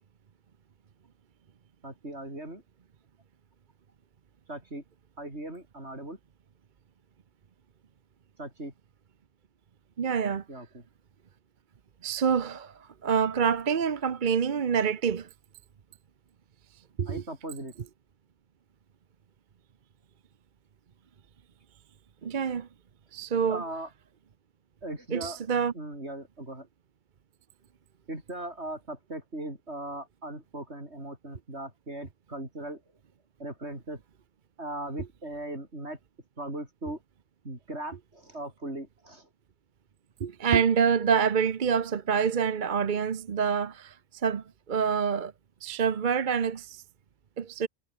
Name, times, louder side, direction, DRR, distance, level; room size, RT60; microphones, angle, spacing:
voice 1, 1.8-2.6 4.5-4.8 5.2-6.2 8.4-8.7 10.5-10.8 17.1-17.7 23.5-23.9 24.8-25.4 25.7-26.7 28.1-32.8 33.4-34.0 34.6-36.0 36.4-37.0 37.4-39.3, right 1 dB, 80° right, 7.6 m, -38 dB
voice 2, 10.0-10.4 12.0-12.7 13.0-15.3 17.0-17.2 22.2-22.7 23.1-23.6 25.1-25.7 40.2-43.9 44.2-45.3 45.6-46.8 47.4-47.7, right 6 dB, 50° right, 0.9 m, -26 dB
omnidirectional pair, 1.1 m